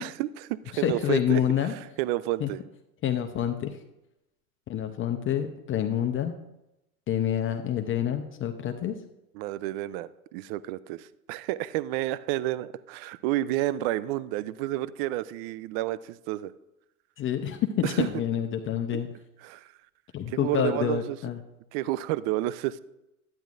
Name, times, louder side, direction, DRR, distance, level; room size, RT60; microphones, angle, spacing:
voice 1, 0.0-2.6 9.3-16.5 17.8-18.1 18.9-19.0 19.4-19.7 20.3-21.2 21.7-22.8, right 15 dB, 45° right, 17 dB, 0.4 m, -30 dB
voice 2, 0.7-1.7 2.4-2.5 3.0-3.8 4.7-6.4 7.1-8.9 17.2-19.1 20.1-21.4, left 9 dB, 25° left, 6 dB, 0.7 m, -27 dB
11.5 x 9.6 x 2.5 m, 0.90 s
hypercardioid pair, 85°, 45 cm